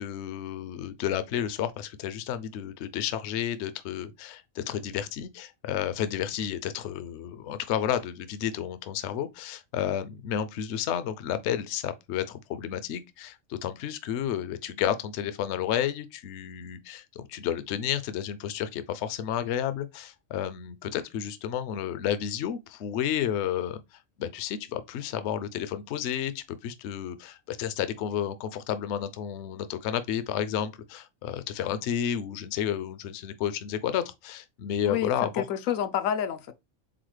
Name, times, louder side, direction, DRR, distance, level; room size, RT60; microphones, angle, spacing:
voice 1, 0.0-23.8 24.2-35.3, left 9 dB, 65° left, 0.8 m, -31 dB
voice 2, 34.8-36.5, left 9 dB, 90° left, 1.0 m, -29 dB
4.1 x 3.9 x 3.1 m
omnidirectional pair, 1.3 m